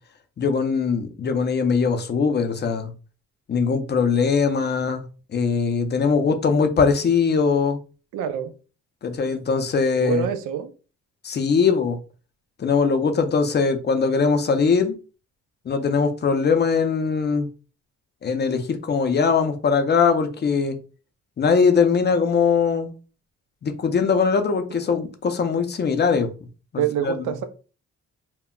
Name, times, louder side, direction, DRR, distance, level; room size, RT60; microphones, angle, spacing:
voice 1, 0.4-2.9 3.5-5.0 5.3-7.8 9.0-10.3 11.2-12.0 12.6-15.0 15.7-17.5 18.2-20.8 21.4-22.9 23.6-26.3 26.7-27.1, left 5 dB, 35° left, 7 dB, 0.5 m, -21 dB
voice 2, 8.1-8.5 10.0-10.7 26.7-27.4, right 9 dB, 85° right, 9 dB, 0.5 m, -26 dB
2.1 x 2.0 x 3.6 m, 0.35 s
cardioid pair, 90°, 30 cm